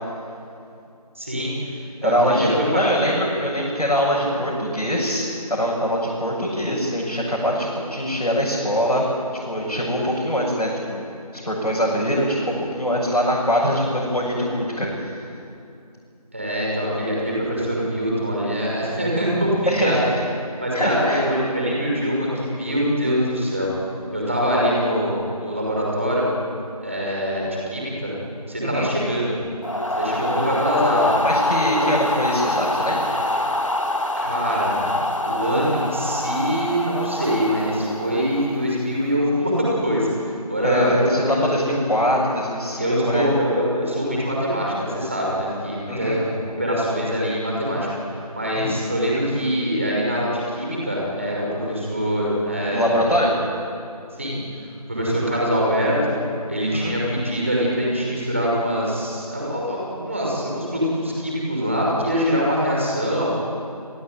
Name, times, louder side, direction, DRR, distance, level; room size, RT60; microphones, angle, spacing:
voice 1, 1.2-1.7 2.0-2.8 16.3-19.5 19.8-20.0 20.6-23.7 24.1-26.3 26.8-28.1 28.5-29.4 30.0-31.1 31.8-31.9 34.2-34.9 35.2-41.3 41.6-41.7 42.8-53.0 54.2-54.3 54.9-56.1 56.5-63.3, equal, 20° right, -4 dB, 5.8 m, -23 dB
voice 2, 2.0-9.1 9.5-11.0 11.3-15.2 19.7-20.2 20.7-21.2 28.6-28.9 31.2-33.1 40.6-43.3 45.9-46.2 48.5-48.7 52.7-53.4 55.1-55.2 56.7-56.9, equal, 80° left, -4 dB, 7.9 m, -23 dB
sound 1, 29.6-38.7, left 1 dB, 55° left, 2.0 m, -25 dB
30.0 x 17.0 x 9.5 m, 2.6 s
figure-of-eight pair, 175°, 20 cm